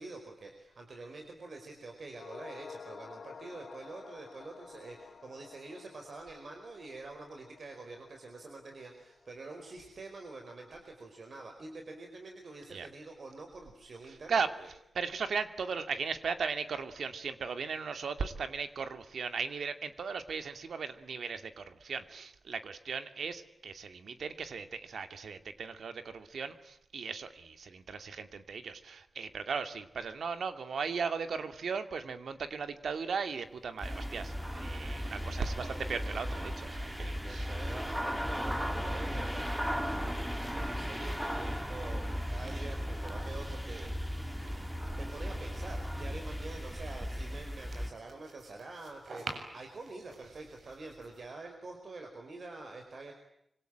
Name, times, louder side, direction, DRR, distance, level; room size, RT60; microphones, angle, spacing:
voice 1, 0.0-14.7 35.2-35.9 37.2-53.1, right 3 dB, 50° right, 4 dB, 4.9 m, -47 dB
sound 1, 2.1-10.6 10.8-10.9, left 5 dB, 60° left, 1.7 m, -52 dB
voice 2, 14.9-37.5, right 5 dB, 80° right, 9 dB, 2.6 m, -37 dB
sound 2, 33.8-47.9, equal, 5° right, 2.4 m, -36 dB
sound 3, 42.2-51.3, right 3 dB, 65° right, 7.3 m, -53 dB
26.5 x 25.5 x 9.0 m, 0.79 s
wide cardioid pair, 175°, 0 cm